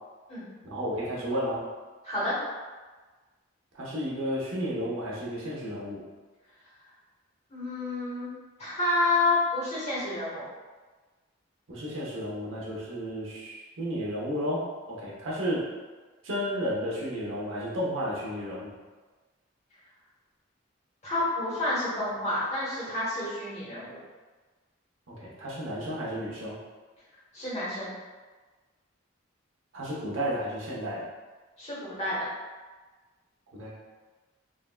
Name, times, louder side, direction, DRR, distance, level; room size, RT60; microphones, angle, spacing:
voice 1, 0.7-1.6 3.7-6.0 11.7-15.7 16.2-18.7 25.1-26.6 29.7-31.0 33.5-33.7, equal, 80° right, -6 dB, 0.8 m, -32 dB
voice 2, 2.0-2.3 7.5-8.3 8.6-10.4 21.0-24.0 27.3-27.9 31.6-32.2, left 2 dB, 35° left, -9 dB, 1.0 m, -29 dB
3.6 x 2.2 x 2.2 m, 1.3 s
head